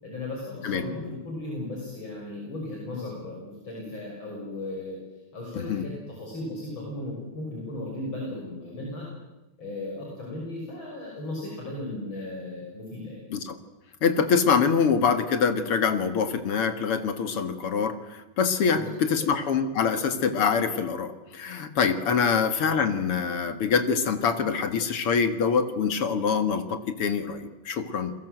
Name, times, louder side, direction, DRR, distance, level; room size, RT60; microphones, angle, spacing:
voice 1, 0.0-5.0 5.3-9.1 9.6-13.2 18.7-19.3, left 2 dB, 60° left, -2 dB, 7.0 m, -36 dB
voice 2, 5.5-5.9 13.3-13.6 14.0-28.1, left 6 dB, 85° left, 9 dB, 2.8 m, -25 dB
30.0 x 22.5 x 8.0 m, 0.99 s
omnidirectional pair, 2.4 m